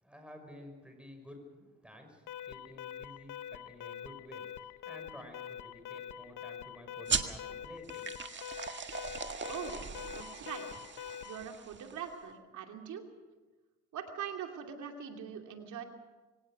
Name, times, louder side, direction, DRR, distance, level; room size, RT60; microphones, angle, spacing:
voice 1, 0.0-8.1, equal, 5° right, 4 dB, 6.1 m, -52 dB
Alarm, 2.3-11.5, left 9 dB, 80° left, 1.0 m, -45 dB
sound 1, 7.1-12.1, right 5 dB, 40° right, 1.7 m, -39 dB
voice 2, 10.0-10.6 11.2-13.0 13.9-15.8, right 8 dB, 75° right, 4 dB, 2.7 m, -42 dB
23.5 x 18.0 x 6.5 m, 1.2 s
cardioid pair, 90°, 30 cm